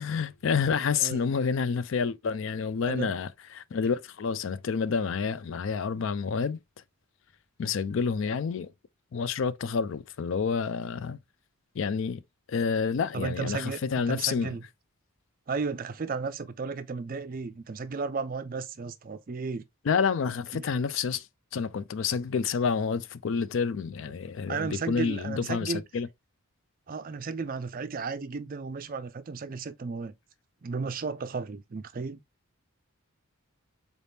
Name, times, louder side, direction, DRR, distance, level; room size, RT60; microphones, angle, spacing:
voice 1, 0.0-6.6 7.6-8.7 9.1-11.2 11.8-12.2 12.5-14.5 19.8-21.3 21.5-26.1, left 5 dB, 60° left, 0.4 m, -29 dB
voice 2, 13.1-13.8 14.1-14.6 15.5-19.6 20.5-20.7 24.5-25.8 26.9-30.1 30.6-32.2, right 4 dB, 40° right, 0.4 m, -34 dB
4.0 x 3.4 x 2.6 m
head